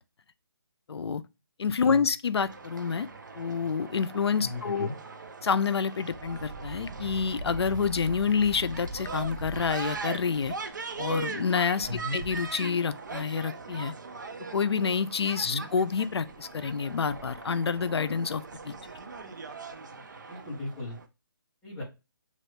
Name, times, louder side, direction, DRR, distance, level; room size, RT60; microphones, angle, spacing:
voice 1, 0.9-1.2 1.6-3.1 3.4-4.9 5.4-10.6 11.0-13.9 14.5-18.7, left 6 dB, 85° left, 0.4 m, -28 dB
sound 1, 2.3-21.1, right 4 dB, 50° right, 0.5 m, -40 dB
voice 2, 4.4-4.9 11.8-12.2 15.4-15.6 20.3-21.0 21.6-21.8, left 2 dB, 5° left, 0.6 m, -36 dB
3.1 x 2.4 x 3.2 m
hypercardioid pair, 175°, 13 cm